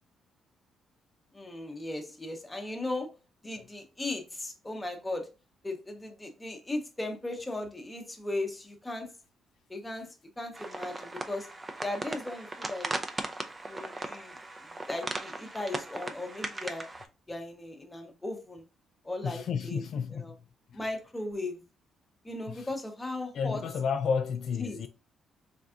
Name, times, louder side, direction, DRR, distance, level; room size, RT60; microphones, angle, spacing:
voice 1, 1.3-3.1 3.4-5.3 5.6-9.1 9.7-10.1 10.4-11.5 11.8-12.9 13.7-14.4 14.9-16.9 17.3-18.6 19.0-19.8 20.1-20.3 20.7-21.6 22.2-23.6 24.6-24.8, left 2 dB, 10° left, 0.8 m, -37 dB
sound 1, 10.5-17.1, right 2 dB, 20° right, 0.5 m, -38 dB
voice 2, 19.2-20.4 22.5-22.7 23.3-24.9, left 6 dB, 60° left, 0.3 m, -31 dB
3.9 x 3.4 x 2.4 m
cardioid pair, 130°, 0 cm